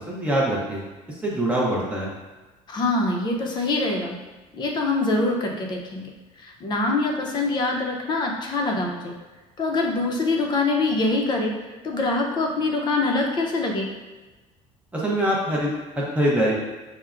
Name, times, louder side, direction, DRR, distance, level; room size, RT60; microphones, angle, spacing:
voice 1, 0.1-0.8 1.2-2.1 14.9-16.5, right 1 dB, 10° right, -5 dB, 0.5 m, -23 dB
voice 2, 2.7-4.2 4.5-6.1 6.4-9.1 9.6-11.5 11.8-13.9, left 2 dB, 35° left, 1 dB, 0.5 m, -24 dB
5.7 x 2.1 x 2.4 m, 1.2 s
cardioid pair, 150°, 13 cm